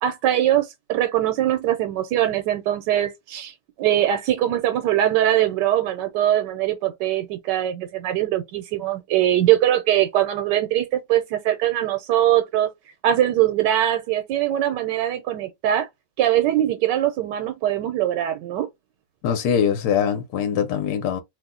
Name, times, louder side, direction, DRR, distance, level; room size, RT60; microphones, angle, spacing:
voice 1, 0.0-12.7 13.0-15.9 16.2-18.7, right 12 dB, 90° right, 1.2 m, -22 dB
voice 2, 19.2-21.2, left 8 dB, 75° left, 1.1 m, -22 dB
2.9 x 2.0 x 3.6 m
omnidirectional pair, 1.8 m